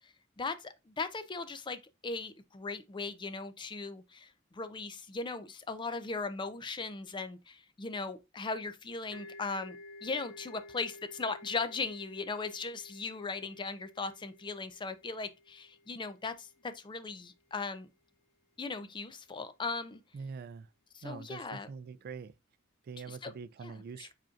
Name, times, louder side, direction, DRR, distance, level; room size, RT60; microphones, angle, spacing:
voice 1, 0.0-17.9 18.6-20.0 20.9-21.7 23.1-23.3 23.6-24.1, left 4 dB, 25° left, 0.4 m, -38 dB
sound 1, 9.1-16.6, left 2 dB, 75° left, 2.0 m, -53 dB
voice 2, 20.1-20.7 21.0-22.3 22.8-24.1, right 5 dB, 50° right, 0.3 m, -44 dB
5.0 x 4.2 x 2.4 m
head